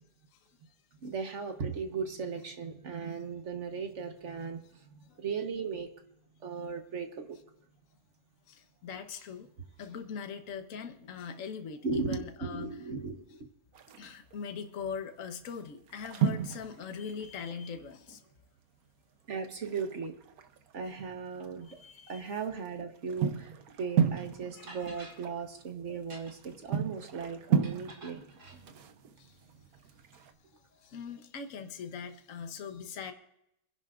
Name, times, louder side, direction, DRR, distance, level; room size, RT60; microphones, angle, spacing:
voice 1, 1.0-5.9 6.4-7.4 11.8-13.5 19.3-20.1 20.7-21.8 22.1-23.5 23.8-28.4, right 5 dB, 55° right, 6 dB, 1.4 m, -37 dB
voice 2, 8.5-9.5 9.8-12.8 14.0-18.2 21.6-22.3 24.5-25.1 28.4-28.5 29.2-29.4 30.7-33.1, left 6 dB, 60° left, 7 dB, 1.4 m, -41 dB
sound 1, 13.7-14.3 15.0-15.2 15.5-18.2 18.5-18.6 18.9-19.0 19.4-21.5 22.0-30.3, right 8 dB, 75° right, 1.3 m, -34 dB
sound 2, 24.2-24.3 24.7-25.2 26.0-26.5 27.6-28.6, right 2 dB, 90° right, 3.5 m, -50 dB
28.5 x 10.5 x 2.5 m, 0.81 s
omnidirectional pair, 1.6 m